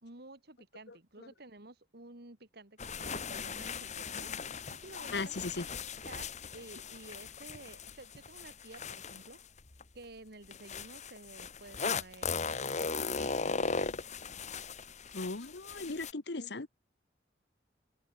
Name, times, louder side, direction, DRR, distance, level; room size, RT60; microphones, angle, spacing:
voice 1, 0.0-4.3 4.7-5.5 6.1-9.4 9.9-14.0, right 2 dB, 60° right, 3.2 m, -52 dB
voice 2, 0.9-1.3 5.1-5.6 15.1-16.7, left 3 dB, 65° left, 1.3 m, -38 dB
sound 1, 2.8-9.8 10.5-16.1, left 5 dB, 40° left, 1.4 m, -38 dB
open air
head